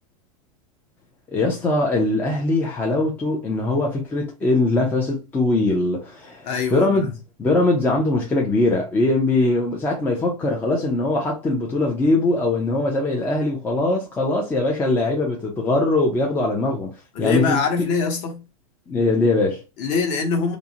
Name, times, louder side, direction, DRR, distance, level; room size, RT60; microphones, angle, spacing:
voice 1, 1.3-7.1 7.4-16.9 17.2-17.6 18.9-19.6, left 2 dB, 10° left, 0.4 m, -21 dB
voice 2, 6.4-7.1 17.1-18.4 19.8-20.6, left 5 dB, 40° left, 0.8 m, -23 dB
2.5 x 2.0 x 2.6 m
supercardioid pair, 140°, 18 cm